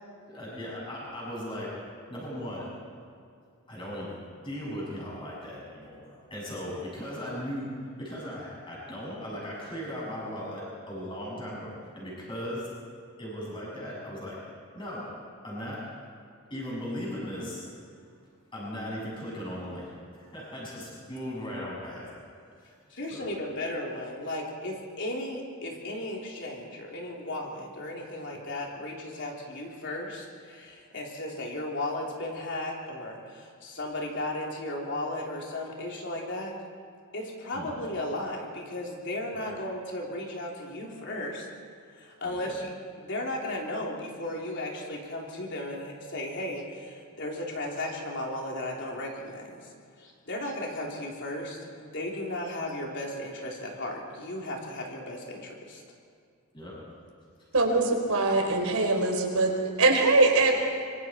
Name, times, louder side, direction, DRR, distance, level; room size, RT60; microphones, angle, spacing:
voice 1, 0.3-1.7 2.1-2.7 3.7-7.7 8.0-12.7 13.2-14.4 14.7-15.1 15.4-15.8 16.5-17.6 18.5-22.2 22.6-22.7 23.1-23.3 37.5-37.7 39.3-39.5 42.2-42.6 56.5-56.7, equal, 20° left, -5 dB, 7.9 m, -37 dB
voice 2, 22.9-36.5 37.1-41.5 41.9-42.7 43.0-49.7 50.0-55.8, left 1 dB, 55° left, -1 dB, 3.6 m, -35 dB
voice 3, 57.5-60.5, right 3 dB, 75° right, 2 dB, 4.1 m, -22 dB
25.5 x 24.0 x 4.6 m, 2.3 s
head